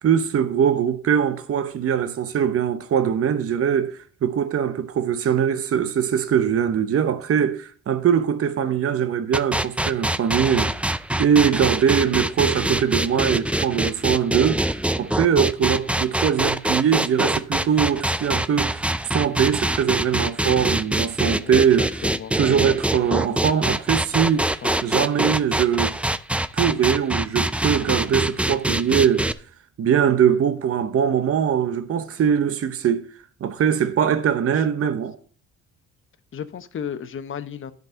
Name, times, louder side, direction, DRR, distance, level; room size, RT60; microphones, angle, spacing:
voice 1, 0.0-10.7 11.2-14.7 15.0-21.9 22.4-24.5 24.8-26.0 26.5-29.3 29.8-33.1 33.4-35.1, right 8 dB, 50° right, 0.9 m, -21 dB
sound 1, 9.3-29.3, right 1 dB, 5° right, 0.4 m, -24 dB
voice 2, 22.0-22.4 23.3-23.5 24.4-24.8 30.2-30.4 34.5-34.6 36.3-37.7, left 8 dB, 40° left, 1.0 m, -35 dB
10.5 x 5.4 x 6.2 m
cardioid pair, 90°, 30 cm